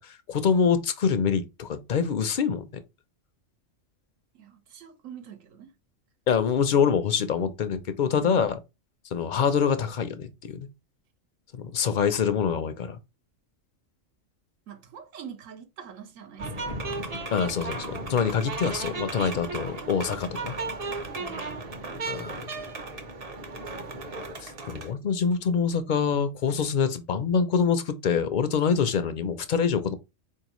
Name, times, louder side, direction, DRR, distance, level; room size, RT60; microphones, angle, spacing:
voice 1, 0.0-2.7 6.3-8.6 9.1-10.7 11.6-13.0 17.3-20.5 22.1-22.4 24.4-29.9, left 6 dB, 65° left, 0.5 m, -25 dB
voice 2, 4.3-5.7 14.7-16.7 17.9-18.5 18.8-19.2 21.2-22.0, right 8 dB, 90° right, 1.2 m, -45 dB
sound 1, 16.4-24.9, right 3 dB, 40° right, 0.6 m, -35 dB
4.2 x 2.8 x 2.9 m
omnidirectional pair, 1.3 m